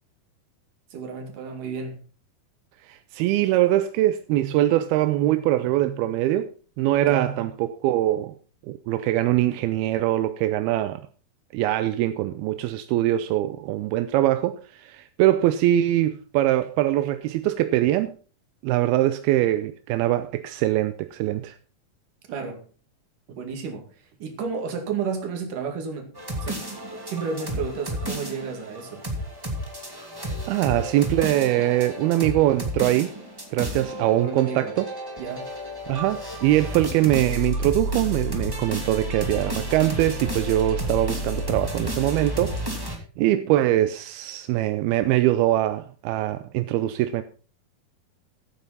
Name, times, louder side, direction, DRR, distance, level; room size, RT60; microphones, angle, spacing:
voice 1, 0.9-2.0 5.6-5.8 7.0-7.3 22.3-22.6 23.3-23.9 24.2-26.1 26.4-26.7 27.1-29.0 34.2-34.7 35.2-35.5, right 5 dB, 60° right, 3.6 m, -32 dB
voice 2, 2.8-8.4 8.7-11.0 11.5-18.1 18.6-21.6 30.5-33.1 33.5-34.9 35.9-47.2, right 14 dB, 85° right, 2.6 m, -23 dB
sound 1, 26.2-43.0, equal, 10° right, 1.9 m, -31 dB
15.5 x 9.2 x 4.1 m
omnidirectional pair, 4.3 m